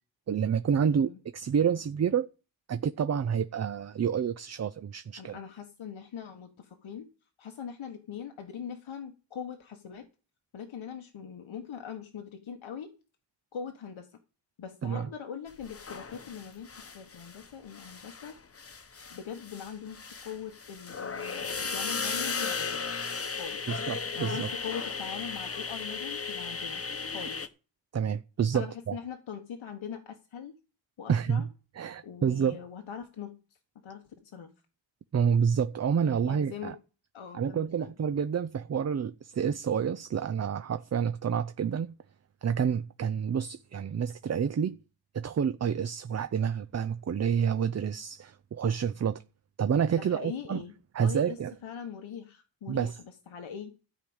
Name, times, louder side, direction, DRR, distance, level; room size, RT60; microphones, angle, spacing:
voice 1, 0.3-2.3 2.7-5.4 14.8-15.1 23.7-24.5 27.9-28.9 31.1-31.4 31.8-32.6 35.1-36.8 37.3-42.0 42.4-44.8 45.1-49.2 49.6-50.6 50.9-51.5 52.7-53.0, right 7 dB, 35° right, 0.5 m, -28 dB
voice 2, 0.8-1.2 5.2-7.1 7.4-10.1 10.5-13.0 13.5-14.2 14.6-18.3 19.1-22.9 23.4-23.7 24.1-26.8 27.1-27.4 28.5-30.6 31.0-31.5 32.0-33.4 33.8-34.5 36.0-36.8 37.1-37.9 49.9-50.7 51.0-53.8, left 7 dB, 90° left, 1.4 m, -42 dB
sound 1, 15.6-17.5 17.7-27.5, left 5 dB, 30° left, 0.9 m, -36 dB
13.5 x 4.8 x 8.8 m
wide cardioid pair, 115°, 46 cm